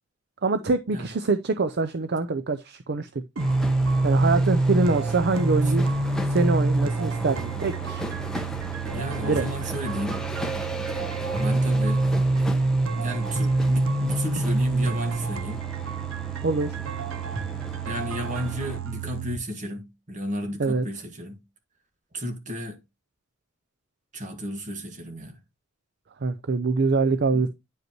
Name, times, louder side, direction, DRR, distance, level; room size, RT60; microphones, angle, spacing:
voice 1, 0.4-3.1 4.0-5.9 6.3-8.0 9.2-9.5 16.4-16.8 20.6-20.8 26.2-27.5, right 3 dB, 55° right, 0.5 m, -24 dB
sound 1, 3.4-18.8, right 1 dB, 5° left, 0.9 m, -36 dB
sound 2, 3.4-19.4, right 2 dB, 85° right, 0.8 m, -26 dB
voice 2, 8.9-10.3 11.4-12.0 12.9-15.6 17.8-21.4 22.1-22.8 24.1-25.4 27.3-27.5, equal, 35° right, 1.8 m, -33 dB
9.3 x 5.2 x 3.0 m
head